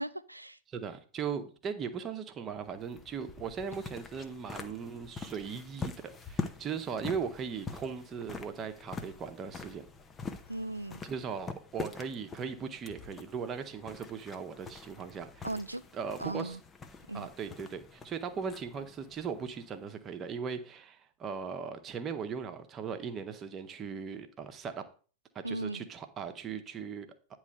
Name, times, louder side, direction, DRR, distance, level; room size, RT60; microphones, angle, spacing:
voice 1, 0.0-0.6 10.5-11.0 15.4-15.8 16.2-16.6 17.1-17.3 25.4-25.9, right 1 dB, 85° right, 0.4 m, -37 dB
voice 2, 0.7-5.9 6.2-9.8 11.0-15.5 15.9-16.6 17.1-24.8 25.3-27.4, right 6 dB, 25° right, 1.0 m, -38 dB
sound 1, 2.5-20.2, left 4 dB, 20° left, 0.8 m, -45 dB
9.6 x 3.2 x 6.4 m
figure-of-eight pair, 90°, 0 cm